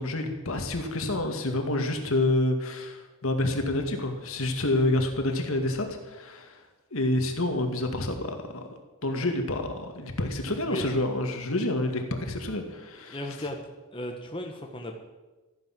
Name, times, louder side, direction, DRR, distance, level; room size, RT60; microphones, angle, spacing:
voice 1, 0.0-6.6 6.9-8.6 9.0-13.2, left 1 dB, 70° left, 5 dB, 2.1 m, -28 dB
voice 2, 13.1-13.6 13.9-15.0, left 1 dB, 25° left, 2 dB, 1.4 m, -35 dB
14.0 x 10.0 x 7.6 m, 1.2 s
head